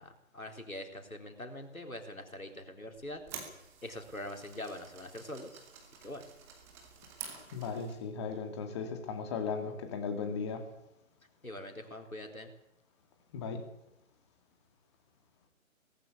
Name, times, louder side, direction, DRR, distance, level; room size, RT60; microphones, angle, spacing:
voice 1, 0.0-3.2 3.8-5.6 6.0-6.2 11.4-12.5, left 1 dB, 80° left, 4 dB, 4.2 m, -43 dB
sound 1, 2.9-8.1, right 7 dB, 5° right, 1.1 m, -49 dB
voice 2, 7.5-10.6 13.3-13.6, left 5 dB, 20° left, 6 dB, 2.2 m, -36 dB
18.5 x 15.0 x 9.8 m, 0.89 s
figure-of-eight pair, 145°, 41 cm